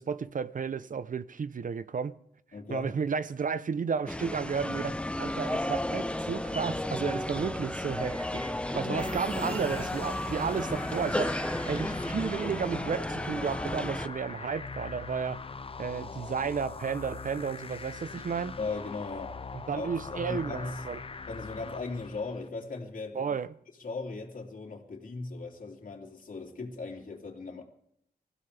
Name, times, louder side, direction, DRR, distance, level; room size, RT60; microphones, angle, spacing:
voice 1, 0.0-2.2 2.7-15.4 15.8-18.6 19.7-21.0 23.1-23.5, right 6 dB, 55° right, 0.8 m, -33 dB
voice 2, 2.5-2.9 8.8-9.1 18.6-19.4 19.7-20.8 21.3-23.4 23.8-27.7, left 3 dB, 55° left, 3.2 m, -38 dB
sound 1, 4.1-14.1, left 1 dB, 5° left, 0.9 m, -33 dB
sound 2, 6.9-11.9, right 3 dB, 35° right, 1.5 m, -52 dB
sound 3, 9.0-22.5, left 4 dB, 35° left, 0.6 m, -42 dB
24.5 x 15.0 x 3.5 m
wide cardioid pair, 105°, 16 cm